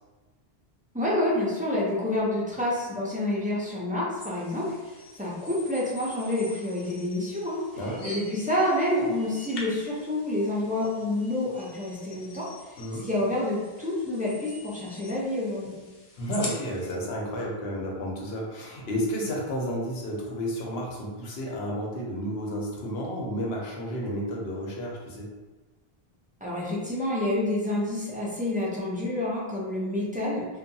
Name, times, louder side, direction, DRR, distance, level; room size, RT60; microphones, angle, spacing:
voice 1, 0.9-12.8 13.0-15.8 26.4-30.5, left 1 dB, 15° right, -7 dB, 0.3 m, -28 dB
sound 1, 4.2-16.9, left 2 dB, 55° left, 0.6 m, -45 dB
voice 2, 12.8-13.1 16.2-25.3, equal, 85° left, -2 dB, 0.9 m, -31 dB
2.7 x 2.2 x 2.6 m, 1.2 s
omnidirectional pair, 1.0 m